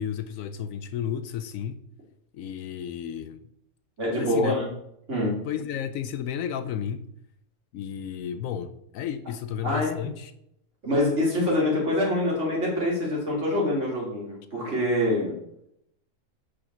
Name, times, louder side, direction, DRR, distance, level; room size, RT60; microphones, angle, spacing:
voice 1, 0.0-1.8 2.3-3.4 4.2-4.6 5.5-7.0 7.7-10.3, left 9 dB, 75° left, 0.9 m, -32 dB
voice 2, 4.0-4.7 5.1-5.4 9.6-10.0 10.8-15.3, left 1 dB, 55° right, 2.7 m, -25 dB
5.0 x 5.0 x 5.7 m
omnidirectional pair, 1.5 m